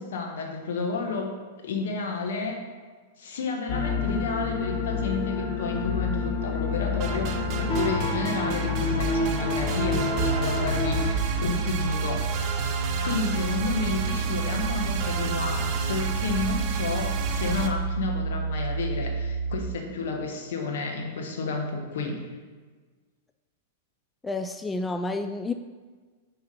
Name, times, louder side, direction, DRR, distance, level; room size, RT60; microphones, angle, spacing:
voice 1, 0.0-2.6 3.2-12.3 13.0-22.2, left 4 dB, 70° left, 2 dB, 1.2 m, -31 dB
sound 1, 3.7-11.1, left 4 dB, 45° left, 0.9 m, -28 dB
sound 2, 7.0-17.7, right 6 dB, 45° right, 0.7 m, -32 dB
sound 3, 10.2-19.6, right 4 dB, 65° right, 1.0 m, -30 dB
voice 2, 24.2-25.5, left 2 dB, 10° left, 8 dB, 0.3 m, -30 dB
5.6 x 4.6 x 5.3 m, 1.4 s
hypercardioid pair, 110°, 0 cm